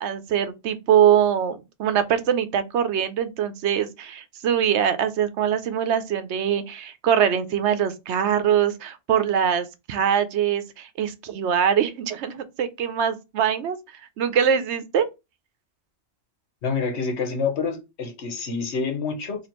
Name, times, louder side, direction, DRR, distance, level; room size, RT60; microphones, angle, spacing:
voice 1, 0.0-13.8 14.2-15.1, right 8 dB, 80° right, 0.9 m, -23 dB
voice 2, 16.6-19.5, left 5 dB, 75° left, 1.3 m, -27 dB
4.1 x 2.8 x 3.0 m
omnidirectional pair, 1.2 m